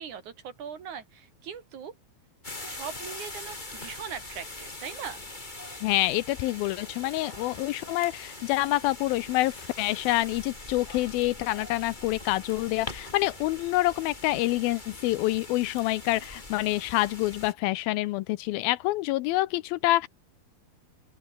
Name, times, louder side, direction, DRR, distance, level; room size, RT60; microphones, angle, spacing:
voice 1, 0.0-1.9 2.6-5.2, right 7 dB, 55° right, 3.4 m, -40 dB
sound 1, 2.4-17.5, left 2 dB, 15° left, 2.8 m, -42 dB
voice 2, 5.8-20.1, left 18 dB, 80° left, 2.4 m, -27 dB
open air
omnidirectional pair, 4.4 m